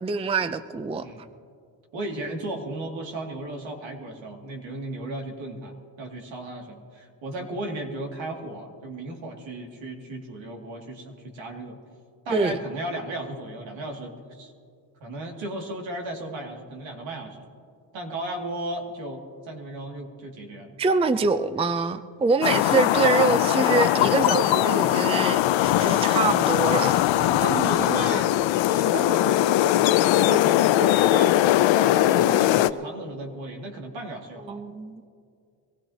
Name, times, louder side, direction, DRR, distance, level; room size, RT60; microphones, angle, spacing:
voice 1, 0.0-1.1 12.3-12.6 20.8-27.0 34.5-35.1, right 4 dB, 15° right, 11 dB, 0.5 m, -25 dB
voice 2, 1.9-5.7 6.0-11.8 12.2-14.5 15.0-17.5 17.9-20.7 23.2-23.4 27.1-28.3 28.7-31.4 31.7-34.6, right 2 dB, 70° right, 1 dB, 2.5 m, -35 dB
sound 1, 22.4-32.7, left 13 dB, 70° left, 0.6 m, -20 dB
23.5 x 16.0 x 2.9 m, 2.3 s
cardioid pair, 80°, 47 cm